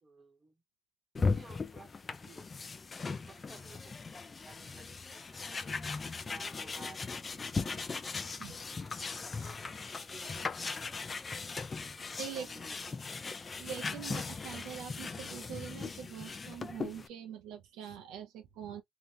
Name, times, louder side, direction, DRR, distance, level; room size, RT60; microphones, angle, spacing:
voice 1, 0.0-0.6 1.3-2.5 3.3-5.6 6.3-10.4 12.3-13.7, right 3 dB, 35° right, 0.8 m, -57 dB
sound 1, 1.2-17.1, left 4 dB, 30° left, 0.4 m, -38 dB
voice 2, 12.2-12.5 13.6-18.8, right 8 dB, 85° right, 0.5 m, -44 dB
2.8 x 2.0 x 3.2 m
cardioid pair, 90°, 0 cm